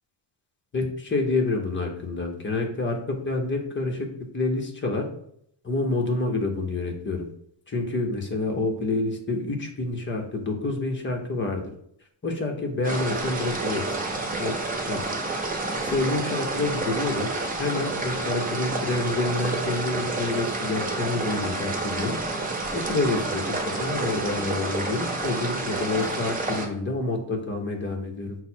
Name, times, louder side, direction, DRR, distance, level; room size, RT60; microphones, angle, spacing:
voice 1, 0.7-4.1 4.3-5.1 5.6-7.3 7.7-11.7 12.2-13.8 14.4-15.1 15.8-17.3 17.6-22.2 22.7-28.4, left 3 dB, 25° left, 2 dB, 0.7 m, -28 dB
sound 1, 12.8-26.7, right 2 dB, 20° right, 0.5 m, -29 dB
5.3 x 2.0 x 4.3 m, 0.68 s
cardioid pair, 160°, 48 cm